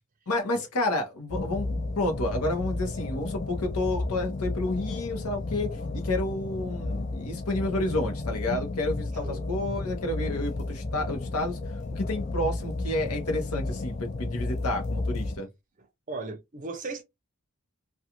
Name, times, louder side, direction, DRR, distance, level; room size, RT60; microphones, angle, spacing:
voice 1, 0.3-5.7 6.0-11.6 11.9-15.5, left 2 dB, 85° left, 0.9 m, -30 dB
sound 1, 1.3-15.4, left 2 dB, 30° left, 0.3 m, -32 dB
voice 2, 15.8-17.0, right 3 dB, 35° right, 0.5 m, -37 dB
2.5 x 2.3 x 2.9 m
head